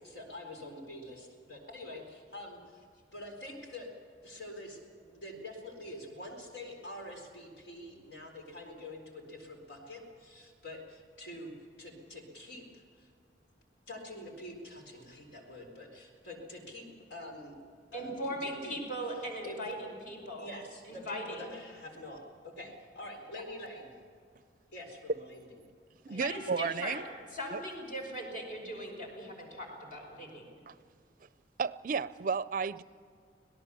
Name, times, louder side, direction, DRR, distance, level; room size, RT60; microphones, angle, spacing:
voice 1, 0.1-2.8 3.1-4.0 4.2-11.5 11.8-13.1 13.9-17.5 17.9-18.8 19.4-19.6 20.4-22.2 22.6-23.9 24.7-25.6 26.1-26.3, left 1 dB, 75° left, 2 dB, 4.2 m, -46 dB
voice 2, 17.9-20.5 20.8-21.5 23.3-23.4 26.1-30.4, equal, 50° left, 1 dB, 5.1 m, -39 dB
voice 3, 26.0-27.0 27.5-27.6 30.7-30.8 31.6-32.8, right 5 dB, 50° right, 17 dB, 0.4 m, -33 dB
25.5 x 18.0 x 7.0 m, 2.1 s
head